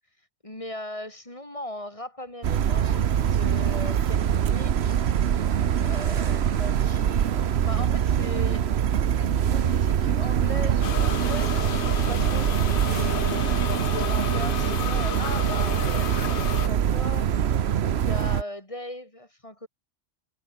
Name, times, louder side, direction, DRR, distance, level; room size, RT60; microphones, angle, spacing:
voice 1, 0.4-5.0 5.8-7.3 7.6-8.7 9.2-17.3 18.0-19.7, left 1 dB, 30° left, 4.0 m, -39 dB
sound 1, 2.4-18.4, right 9 dB, 70° right, 1.1 m, -24 dB
sound 2, 10.8-16.7, left 10 dB, 60° left, 0.7 m, -32 dB
omnidirectional pair, 1.1 m